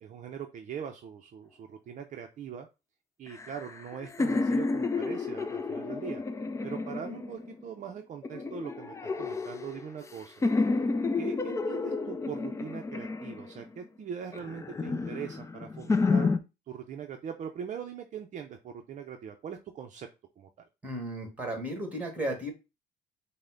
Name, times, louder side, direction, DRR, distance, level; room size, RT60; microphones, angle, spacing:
voice 1, 0.0-2.7 3.2-6.2 6.6-10.4 11.2-16.3 16.7-20.1 20.4-20.5, right 8 dB, 45° right, 4 dB, 0.5 m, -41 dB
sound 1, 3.3-7.6 8.2-10.1 10.4-13.8 14.3-16.4, left 3 dB, 15° left, 0.4 m, -30 dB
voice 2, 20.8-22.5, right 1 dB, 10° right, 3 dB, 1.7 m, -34 dB
5.4 x 2.1 x 3.7 m, 0.27 s
cardioid pair, 110°, 17 cm